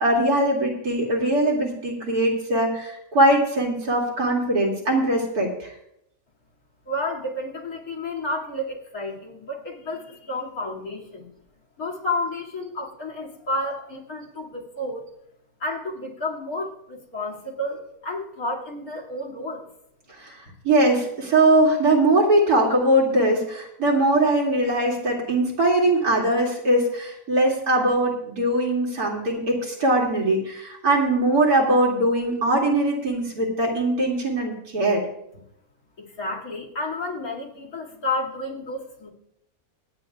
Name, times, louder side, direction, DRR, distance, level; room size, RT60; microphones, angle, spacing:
voice 1, 0.0-5.7 20.2-20.3 20.6-35.0, right 1 dB, 80° right, -2 dB, 3.0 m, -21 dB
voice 2, 6.9-11.3 11.8-15.0 15.6-19.7 36.0-39.1, left 2 dB, 70° left, -3 dB, 2.8 m, -31 dB
26.5 x 9.1 x 2.4 m, 0.77 s
omnidirectional pair, 1.6 m